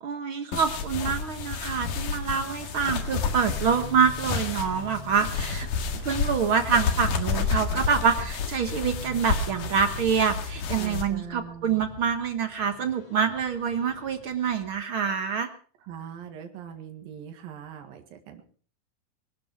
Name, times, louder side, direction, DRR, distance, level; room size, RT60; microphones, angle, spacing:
voice 1, 0.0-5.7 6.0-15.5, right 6 dB, 55° right, 8 dB, 1.5 m, -26 dB
sound 1, 0.5-11.0, left 5 dB, 65° left, 3.2 m, -30 dB
sound 2, 3.0-14.8, left 2 dB, 90° left, 5.5 m, -43 dB
voice 2, 10.8-11.8 15.8-18.4, right 8 dB, 80° right, 5 dB, 3.6 m, -41 dB
23.5 x 12.0 x 4.7 m, 0.42 s
omnidirectional pair, 4.1 m